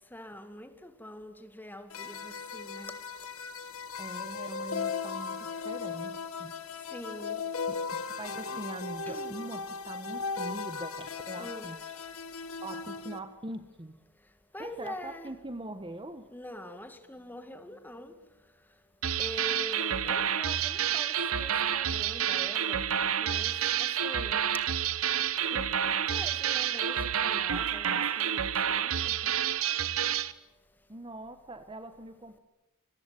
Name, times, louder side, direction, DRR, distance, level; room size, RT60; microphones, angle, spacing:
voice 1, 0.1-2.9 6.9-7.4 8.5-8.6 9.1-9.4 11.4-11.7 14.5-15.3 16.3-18.1 19.2-22.9 23.2-24.4 25.5-29.3, left 1 dB, 10° left, 2.1 m, -44 dB
sound 1, 1.9-13.2, left 5 dB, 70° left, 1.9 m, -37 dB
voice 2, 4.0-6.5 7.7-11.8 12.6-14.0 14.6-16.3 30.9-32.4, right 1 dB, 25° right, 1.2 m, -42 dB
sound 2, 19.0-30.3, right 9 dB, 70° right, 1.1 m, -29 dB
26.0 x 22.5 x 9.2 m
head